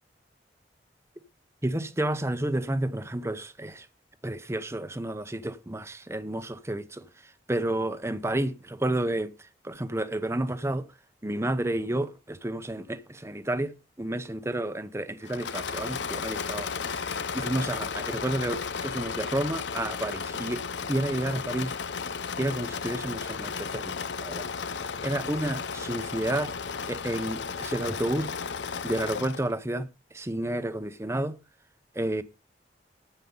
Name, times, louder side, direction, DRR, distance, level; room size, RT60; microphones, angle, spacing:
voice 1, 1.6-3.9 4.2-9.3 9.6-10.9 11.2-20.6 20.9-21.7 22.4-24.5 25.0-26.5 26.9-28.4 28.8-29.9 30.1-31.4 31.9-32.2, right 1 dB, 15° right, 0.8 m, -31 dB
Engine / Mechanisms, 15.2-29.5, left 5 dB, 90° left, 0.7 m, -34 dB
9.6 x 8.1 x 5.5 m
head